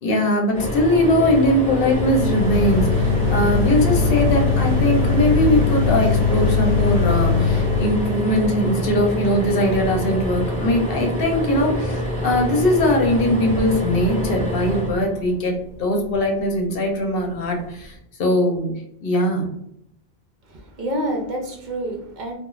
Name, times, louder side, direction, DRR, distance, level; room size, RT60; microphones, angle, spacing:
voice 1, 0.0-17.9 18.2-18.7 19.0-19.5, left 1 dB, 70° left, 1 dB, 0.8 m, -20 dB
sound 1, 0.5-15.8 17.5-17.7 18.0-18.1, equal, 10° left, 0.7 m, -26 dB
sound 2, 1.7-8.3, left 5 dB, 35° right, 1.4 m, -21 dB
voice 2, 20.5-22.3, right 1 dB, 55° right, 2 dB, 0.7 m, -28 dB
2.3 x 2.2 x 3.0 m, 0.75 s
omnidirectional pair, 1.0 m